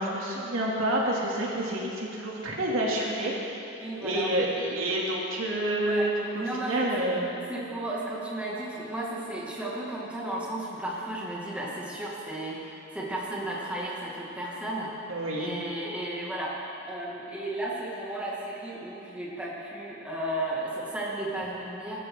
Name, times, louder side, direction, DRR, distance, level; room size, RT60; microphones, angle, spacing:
voice 1, 0.0-3.3 4.0-7.3 15.1-15.5, right 1 dB, 90° right, -4 dB, 3.0 m, -28 dB
voice 2, 3.8-4.3 5.8-6.1 6.4-7.1 7.5-14.9 15.4-22.0, right 1 dB, 5° right, -6 dB, 2.4 m, -34 dB
22.5 x 14.0 x 3.9 m, 2.9 s
head